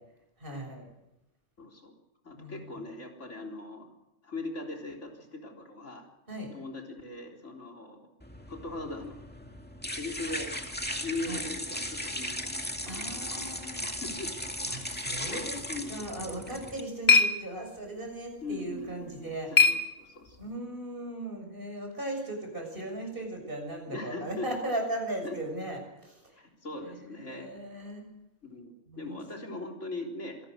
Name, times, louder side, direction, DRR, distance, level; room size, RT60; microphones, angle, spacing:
voice 1, 0.4-0.9 2.4-2.9 6.3-6.5 11.3-11.4 12.9-13.9 14.7-15.6 15.9-19.5 20.4-26.4 26.8-28.1 28.9-29.2, right 1 dB, 45° right, 3 dB, 6.9 m, -37 dB
voice 2, 1.6-1.9 2.2-3.9 4.2-6.1 6.5-8.1 8.5-9.2 9.9-10.6 11.0-14.3 14.7-15.9 18.4-20.4 23.9-24.5 25.2-25.4 26.4-27.5 28.4-30.4, left 2 dB, 85° left, 1 dB, 4.3 m, -40 dB
sound 1, 8.2-16.8, left 1 dB, 10° left, 2.0 m, -37 dB
sound 2, 16.3-20.6, left 4 dB, 40° left, 1.9 m, -28 dB
26.0 x 18.5 x 6.5 m, 0.92 s
omnidirectional pair, 1.2 m